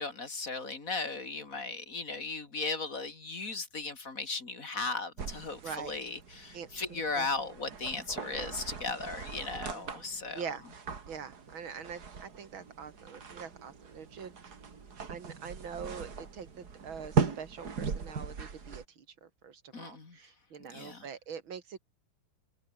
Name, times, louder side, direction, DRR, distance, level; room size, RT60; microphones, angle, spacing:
voice 1, 0.0-10.4 19.7-20.2 20.7-21.1, left 3 dB, 45° left, 3.1 m, -37 dB
sound 1, 5.2-18.8, right 5 dB, 50° right, 2.8 m, -38 dB
voice 2, 5.6-5.9 6.5-7.3 9.7-10.0 10.3-10.7 11.1-14.3 15.1-21.8, right 7 dB, 85° right, 2.9 m, -44 dB
omnidirectional pair, 2.1 m